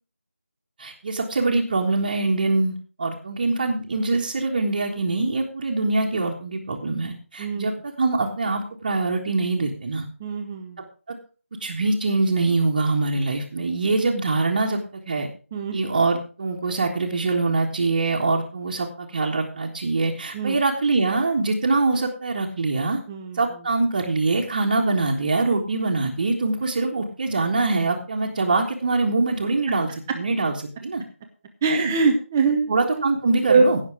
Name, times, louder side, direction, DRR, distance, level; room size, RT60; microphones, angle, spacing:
voice 1, 0.8-10.1 11.1-11.2 11.6-15.3 15.7-23.0 23.3-29.9 30.1-31.0 31.7-31.9 32.7-33.8, right 3 dB, 30° right, -2 dB, 1.5 m, -24 dB
voice 2, 10.2-10.8 15.5-15.8 20.3-20.6 23.1-23.4 31.6-32.7 33.5-33.6, right 4 dB, 10° right, 4 dB, 0.7 m, -22 dB
17.0 x 6.7 x 4.8 m, 0.38 s
figure-of-eight pair, 165°, 8 cm